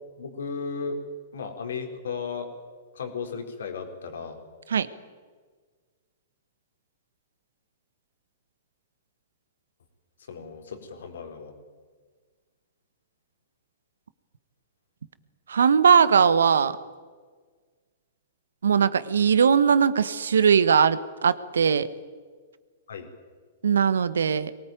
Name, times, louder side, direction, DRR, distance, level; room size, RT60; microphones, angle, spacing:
voice 1, 0.2-1.0 1.3-2.5 2.9-4.4 10.3-11.5 22.9-23.1, left 5 dB, 70° left, 5 dB, 4.1 m, -35 dB
voice 2, 15.5-16.8 18.6-21.9 23.6-24.5, right 6 dB, 75° right, 16 dB, 1.2 m, -20 dB
22.5 x 18.5 x 9.2 m, 1.5 s
hypercardioid pair, 110°, 0 cm